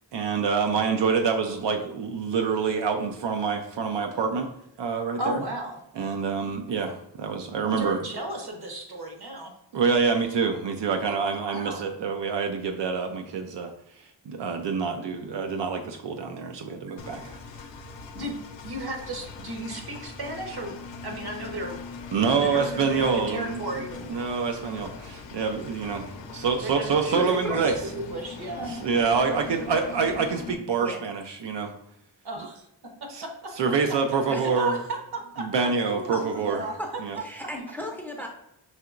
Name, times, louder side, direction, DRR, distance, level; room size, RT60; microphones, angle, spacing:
voice 1, 0.1-4.5 4.8-5.4 6.0-8.0 9.7-13.7 14.3-17.4 22.1-23.6 24.1-27.7 28.8-31.7 33.1-33.2 33.6-34.8 35.4-36.6 37.0-37.2, right 5 dB, 80° right, 4 dB, 0.6 m, -26 dB
voice 2, 5.2-5.8 7.6-9.5 11.1-11.2 11.4-11.8 18.1-18.4 18.6-20.7 21.0-21.8 22.3-24.1 26.6-27.6 28.0-28.7 32.2-32.7 33.0-33.3 33.9-34.0 34.4-36.8, right 1 dB, 60° right, 1 dB, 1.0 m, -34 dB
Engine, 17.0-30.5, left 4 dB, 90° left, 0.6 m, -40 dB
voice 3, 27.1-27.7 28.6-28.7 30.8-31.0 34.3-34.5 36.1-36.5 36.8-36.9 37.2-38.3, equal, 5° left, 2 dB, 0.5 m, -35 dB
5.6 x 2.9 x 2.4 m, 0.79 s
wide cardioid pair, 120°, 42 cm